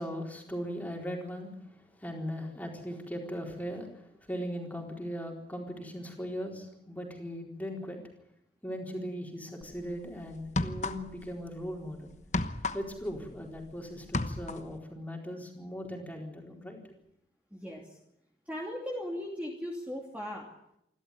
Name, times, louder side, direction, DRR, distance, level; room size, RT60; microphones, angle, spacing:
voice 1, 0.0-1.5 2.0-3.9 4.2-8.0 8.6-12.1 12.7-16.9, equal, 10° left, 1 dB, 4.2 m, -38 dB
sound 1, 9.6-9.8 10.4-11.3 11.6-13.7 14.0-14.8, left 2 dB, 40° left, 1.1 m, -33 dB
voice 2, 17.5-17.8 18.5-20.4, equal, 10° right, -2 dB, 2.8 m, -37 dB
28.0 x 13.0 x 9.8 m, 0.78 s
head